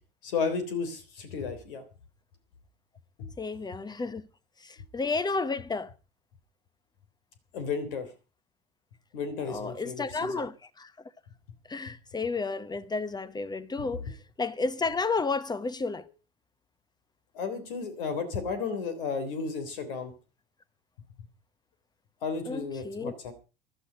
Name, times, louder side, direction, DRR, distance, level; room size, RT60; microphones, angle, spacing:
voice 1, 0.2-1.8 7.5-8.1 9.1-10.4 17.3-20.1 22.2-23.3, left 5 dB, 65° left, 3.4 m, -33 dB
voice 2, 3.4-4.2 4.6-5.9 9.4-10.9 11.7-16.1 22.4-23.1, left 4 dB, 15° left, 1.1 m, -32 dB
15.5 x 12.0 x 5.1 m
figure-of-eight pair, 75°, 29 cm